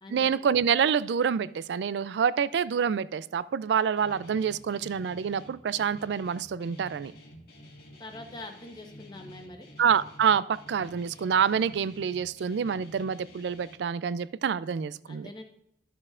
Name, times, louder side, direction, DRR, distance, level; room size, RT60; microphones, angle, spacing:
voice 1, 0.1-7.1 9.8-15.3, right 7 dB, 70° right, 0.3 m, -27 dB
Guitar, 4.0-13.7, left 1 dB, 55° left, 1.7 m, -50 dB
voice 2, 8.0-9.7 15.1-15.4, left 2 dB, 25° left, 1.1 m, -44 dB
12.5 x 6.5 x 2.5 m
head